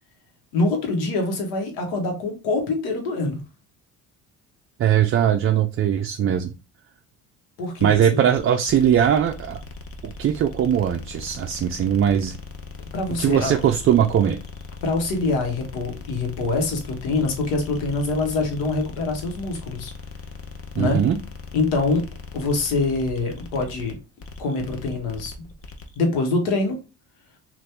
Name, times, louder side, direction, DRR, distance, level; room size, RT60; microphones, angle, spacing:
voice 1, 0.5-3.4 7.6-8.2 12.9-13.6 14.8-19.9 20.8-21.0 21.5-24.0 24.4-25.5 26.0-26.8, left 3 dB, 80° left, 1.2 m, -25 dB
voice 2, 4.8-6.5 7.8-9.6 10.0-12.4 13.2-14.4 20.8-21.2, right 9 dB, 35° right, 0.4 m, -20 dB
sound 1, 7.7-26.0, left 4 dB, 35° left, 0.8 m, -39 dB
2.8 x 2.5 x 3.3 m
hypercardioid pair, 65°, 38 cm